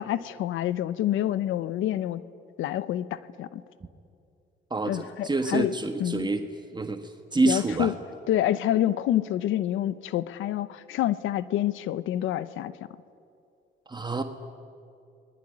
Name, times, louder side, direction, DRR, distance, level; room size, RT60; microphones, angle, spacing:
voice 1, 0.0-2.2 2.6-3.6 4.9-5.7 6.0-6.3 7.4-7.9 8.3-12.7, left 12 dB, 85° left, 16 dB, 0.9 m, -27 dB
voice 2, 4.7-6.5 6.7-7.9 13.9-14.2, right 3 dB, 20° right, 7 dB, 1.7 m, -27 dB
27.5 x 21.0 x 9.9 m, 2.5 s
cardioid pair, 90°, 20 cm